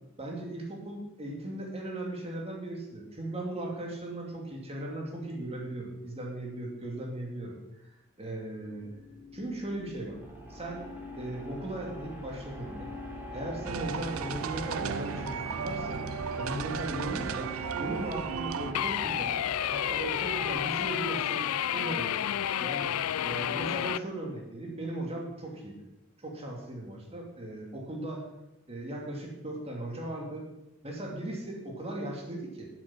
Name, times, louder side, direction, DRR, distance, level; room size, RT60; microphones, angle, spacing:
voice 1, 0.2-7.6 8.2-8.9 9.3-10.2 10.5-10.9 11.2-12.9 13.3-16.0 16.4-17.5 17.8-19.3 19.7-21.4 21.7-22.2 22.6-22.9 23.2-25.8 26.2-28.2 28.7-30.4 30.8-32.7, right 1 dB, 30° right, 0 dB, 2.6 m, -37 dB
sound 1, 8.6-21.7, equal, 10° right, 3.3 m, -43 dB
sound 2, 13.6-18.7, right 6 dB, 70° right, 0.5 m, -35 dB
sound 3, 18.7-24.0, left 10 dB, 90° left, 0.4 m, -30 dB
11.5 x 7.7 x 6.1 m, 0.92 s
head